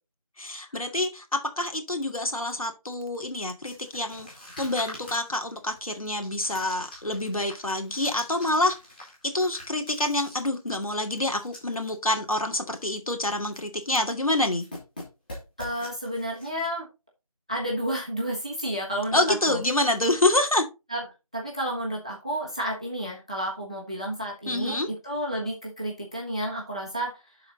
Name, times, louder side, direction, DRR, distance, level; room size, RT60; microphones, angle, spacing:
voice 1, 0.4-4.3 4.6-8.8 9.2-14.6 19.1-20.7 24.5-24.9, left 1 dB, 70° left, 2.5 m, -27 dB
sound 1, 3.6-11.9 12.2-12.3 12.7-13.0 13.2-14.0 14.3-16.7, left 1 dB, 15° left, 2.1 m, -45 dB
voice 2, 15.6-16.9 17.5-19.6 20.9-21.0 21.3-27.1, right 1 dB, 10° right, 0.8 m, -31 dB
11.5 x 4.1 x 3.9 m
figure-of-eight pair, 170°, 19 cm